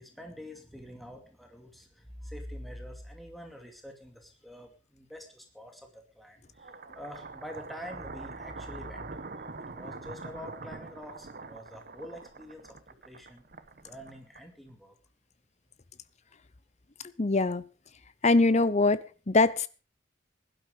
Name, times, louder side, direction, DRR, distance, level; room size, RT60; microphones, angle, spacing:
voice 1, 0.0-9.1 9.7-12.8 13.0-13.5 13.8-15.0, equal, ahead, 3 dB, 2.4 m, -46 dB
sound 1, 6.5-14.8, right 3 dB, 50° right, 1.1 m, -44 dB
voice 2, 17.2-17.6 18.2-19.7, left 3 dB, 35° left, 17 dB, 0.8 m, -23 dB
16.5 x 12.0 x 5.0 m, 0.36 s
head